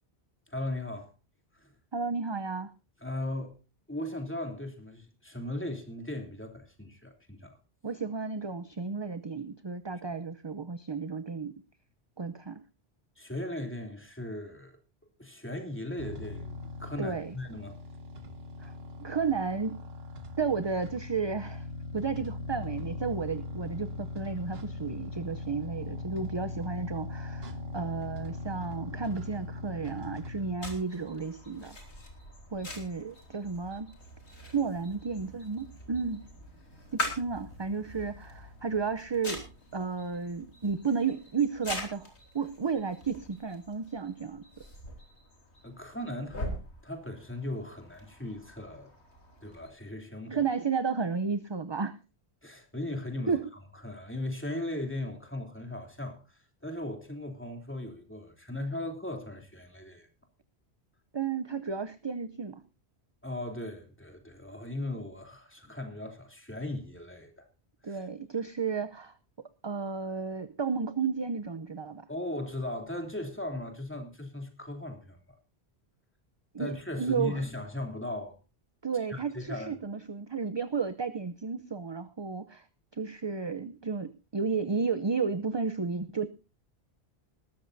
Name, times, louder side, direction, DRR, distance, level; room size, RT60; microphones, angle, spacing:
voice 1, 0.5-1.1 1.5-1.7 3.0-3.6 3.9-7.6 13.2-14.8 15.2-17.8 45.6-46.6 46.8-48.9 49.4-50.4 52.4-53.4 53.8-60.1 63.2-67.5 67.8-68.0 72.1-75.2 76.6-78.4 79.1-79.8, left 1 dB, 10° left, 3.0 m, -38 dB
voice 2, 1.9-2.7 7.8-11.6 12.2-12.6 17.0-17.3 18.6-18.7 19.0-19.8 20.4-21.7 21.9-31.8 32.5-33.9 34.5-36.2 36.9-39.5 39.7-44.4 50.3-52.0 53.3-53.4 61.1-62.6 67.8-69.1 69.6-72.1 76.5-76.7 77.0-77.4 78.8-82.7 82.9-86.3, right 5 dB, 30° right, 0.6 m, -32 dB
sound 1, 16.0-30.5, left 3 dB, 65° right, 1.6 m, -40 dB
sound 2, 30.6-49.7, left 1 dB, 85° left, 3.6 m, -43 dB
20.0 x 13.0 x 2.7 m
omnidirectional pair, 1.1 m